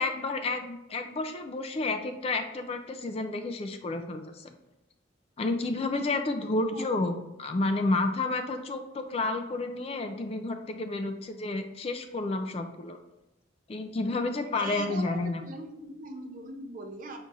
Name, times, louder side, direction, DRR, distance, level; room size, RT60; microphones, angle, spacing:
voice 1, 0.0-4.5 5.4-13.0 13.7-15.4, left 2 dB, 30° left, 6 dB, 0.3 m, -30 dB
voice 2, 14.5-17.2, right 2 dB, 45° right, 3 dB, 0.6 m, -40 dB
5.3 x 2.4 x 4.0 m, 0.91 s
head